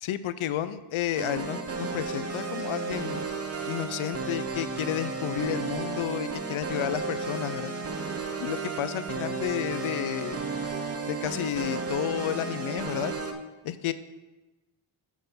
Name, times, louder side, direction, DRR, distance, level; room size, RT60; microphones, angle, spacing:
voice 1, 0.0-3.2 3.7-7.7 8.4-10.4 11.1-13.1 13.6-13.9, left 11 dB, 75° left, 14 dB, 0.6 m, -31 dB
sound 1, 1.1-13.3, right 4 dB, 30° right, 0.8 m, -33 dB
6.4 x 5.9 x 5.3 m, 1.1 s
cardioid pair, 90°, 50 cm